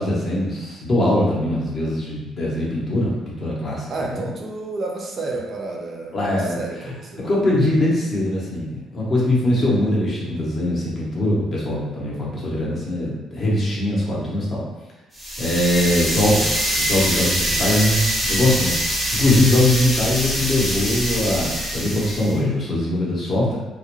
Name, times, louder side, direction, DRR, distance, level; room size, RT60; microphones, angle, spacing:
voice 1, 0.0-4.3 6.1-14.7 15.4-23.6, left 1 dB, 35° left, -5 dB, 0.7 m, -22 dB
voice 2, 3.9-7.3 7.7-7.8, right 2 dB, 35° right, -1 dB, 0.4 m, -31 dB
sound 1, 15.1-22.3, equal, ahead, 0.7 m, -24 dB
2.3 x 2.1 x 2.9 m, 1.1 s
cardioid pair, 150°, 0 cm